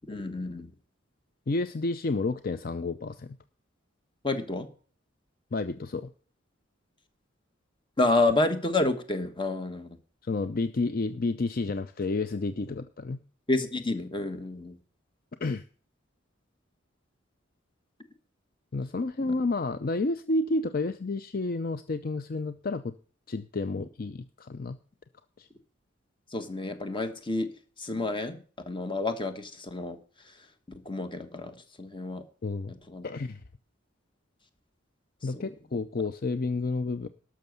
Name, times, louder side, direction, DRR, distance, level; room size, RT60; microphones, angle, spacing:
voice 1, 0.1-0.7 4.2-4.7 8.0-10.0 13.5-14.8 19.2-19.3 23.8-23.9 26.3-27.5 27.8-28.4 28.7-30.0 30.7-32.2 32.9-33.0 35.3-35.5, left 2 dB, 25° left, 8 dB, 1.4 m, -29 dB
voice 2, 1.5-3.4 5.5-6.1 10.2-13.2 15.4-15.6 18.7-22.9 23.3-24.8 25.4-25.5 32.4-32.7 33.0-33.4 35.2-37.1, left 3 dB, 45° left, 11 dB, 0.5 m, -30 dB
12.5 x 6.4 x 7.9 m, 0.42 s
head